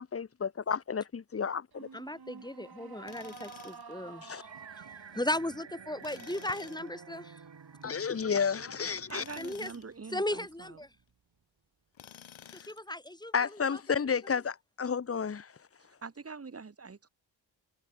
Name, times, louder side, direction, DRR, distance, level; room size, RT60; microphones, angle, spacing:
voice 1, 0.0-1.9 4.2-4.4 7.8-9.2 13.3-15.5, left 6 dB, 30° left, 0.9 m, -31 dB
sound 1, 1.7-11.1, right 5 dB, 50° right, 4.8 m, -52 dB
voice 2, 1.9-4.5 4.7-4.8 5.1-7.4 9.4-9.7 10.1-10.9 12.5-13.8, left 1 dB, 10° left, 1.8 m, -36 dB
Tools, 3.1-3.9 6.0-6.9 9.0-9.9 11.9-12.9, left 10 dB, 85° left, 2.0 m, -52 dB
sound 2, 4.4-9.6, right 6 dB, 70° right, 5.7 m, -53 dB
voice 3, 9.1-10.8 16.0-17.1, right 4 dB, 30° right, 1.3 m, -44 dB
cardioid pair, 65°, 46 cm